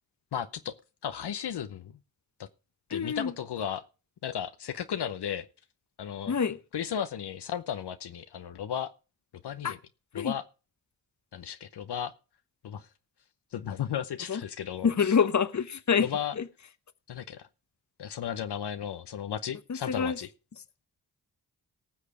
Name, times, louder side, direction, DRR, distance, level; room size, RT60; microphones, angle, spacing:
voice 1, 0.3-0.7 1.0-2.0 2.4-2.5 2.9-3.8 4.2-5.5 6.0-6.4 6.7-8.9 9.4-9.8 10.1-10.4 11.3-12.1 12.6-12.9 13.5-15.2 16.0-16.3 17.1-17.5 18.0-20.3, left 9 dB, 65° left, 0.8 m, -34 dB
voice 2, 2.9-3.3 6.3-6.6 9.6-9.7 10.1-10.3 14.3-14.4 14.8-16.1 16.4-16.5 19.7-20.2, left 6 dB, 40° left, 1.0 m, -26 dB
18.5 x 6.6 x 4.8 m
supercardioid pair, 40°, 43 cm